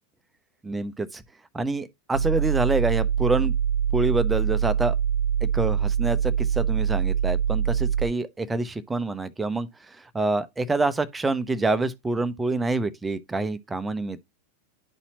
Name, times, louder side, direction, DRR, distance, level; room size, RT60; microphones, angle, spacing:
voice 1, 0.6-1.2 1.5-3.5 3.9-4.9 5.4-9.7 10.1-14.2, right 3 dB, 10° right, 0.7 m, -26 dB
sound 1, 2.1-8.1, right 8 dB, 75° right, 0.7 m, -24 dB
10.5 x 4.2 x 2.9 m
figure-of-eight pair, 90°, 0 cm